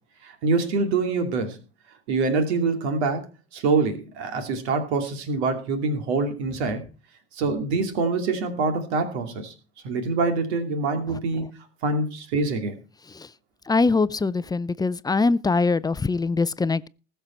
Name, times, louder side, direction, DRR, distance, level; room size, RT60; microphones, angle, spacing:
voice 1, 0.2-1.6 2.1-3.2 3.5-6.8 7.3-9.5 9.8-11.4 11.8-12.7, right 4 dB, 70° right, 2.7 m, -25 dB
voice 2, 13.7-16.9, left 3 dB, 10° left, 0.6 m, -23 dB
20.0 x 6.9 x 4.4 m
hypercardioid pair, 75°, 34 cm